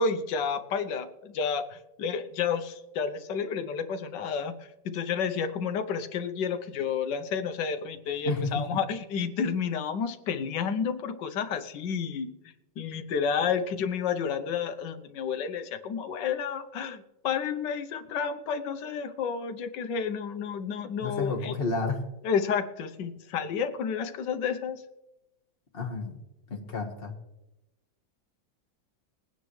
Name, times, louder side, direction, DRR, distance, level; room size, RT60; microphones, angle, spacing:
voice 1, 0.0-4.5 4.8-12.3 12.8-21.6 22.2-24.8, left 6 dB, 70° left, 9 dB, 1.4 m, -30 dB
voice 2, 8.3-8.6 21.0-22.1 25.7-26.2 26.5-27.1, left 3 dB, 30° left, 2 dB, 1.5 m, -31 dB
21.0 x 9.7 x 3.2 m, 0.94 s
omnidirectional pair, 2.1 m